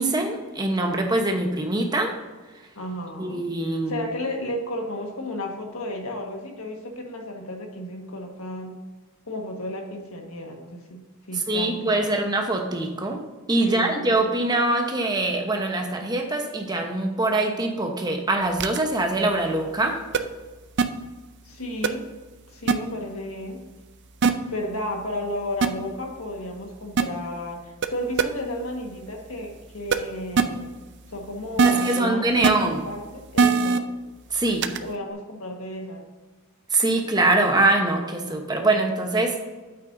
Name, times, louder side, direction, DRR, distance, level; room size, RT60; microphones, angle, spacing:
voice 1, 0.0-2.1 3.2-4.1 11.3-13.2 13.5-20.0 31.6-32.8 34.3-34.7 36.7-39.4, right 2 dB, 20° right, 3 dB, 1.0 m, -23 dB
voice 2, 2.7-8.8 9.3-12.2 13.6-14.3 21.4-22.1 22.5-23.6 24.5-30.7 31.1-33.9 34.8-36.0, left 1 dB, 75° left, 2 dB, 1.6 m, -33 dB
sound 1, 18.6-18.8 20.1-20.2 20.8-20.9 21.8-21.9 22.7-22.8 24.2-24.3 25.6-25.7 27.0-27.1 27.8-27.9 28.2-28.3 29.9-30.0 30.4-30.5 31.6-32.0 32.4-32.5 33.4-33.8 34.6-34.8, right 5 dB, 50° right, 0.5 m, -18 dB
8.9 x 8.7 x 2.7 m, 1.3 s
head